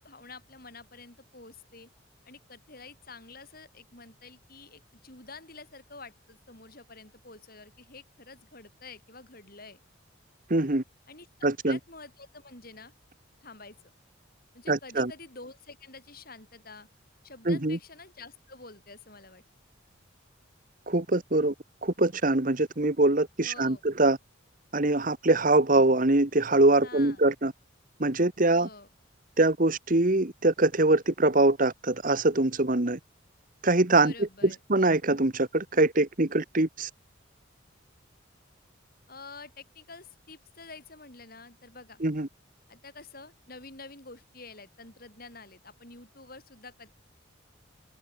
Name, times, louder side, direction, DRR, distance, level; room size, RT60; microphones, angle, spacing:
voice 1, 0.0-1.9 2.3-9.8 11.1-12.9 13.4-13.8 14.5-16.9 17.2-19.4 23.4-23.8 26.8-27.2 28.5-28.9 34.0-34.6 39.1-42.0 42.7-46.9, left 3 dB, 45° left, 6.8 m, -48 dB
voice 2, 10.5-10.8 11.4-11.8 14.7-15.1 17.5-17.8 20.9-21.5 21.8-24.2 24.7-27.5 28.0-28.7 29.4-33.0 33.6-36.9 42.0-42.3, right 2 dB, 40° right, 1.4 m, -23 dB
open air
head